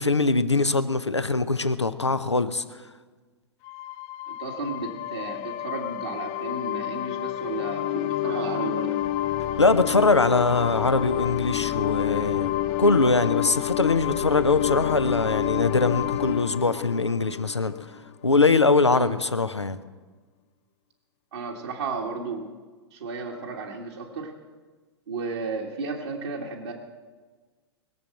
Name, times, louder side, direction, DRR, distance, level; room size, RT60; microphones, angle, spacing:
voice 1, 0.0-2.6 9.6-12.5 12.8-17.7 18.2-19.8, left 3 dB, 90° left, 12 dB, 0.8 m, -22 dB
sound 1, 3.6-18.1, left 13 dB, 40° left, 0.5 m, -29 dB
voice 2, 4.3-9.0 18.9-19.2 21.3-22.5 22.9-24.3 25.1-26.7, right 4 dB, 70° right, -3 dB, 1.8 m, -33 dB
21.5 x 7.3 x 7.6 m, 1.4 s
figure-of-eight pair, 100°, 14 cm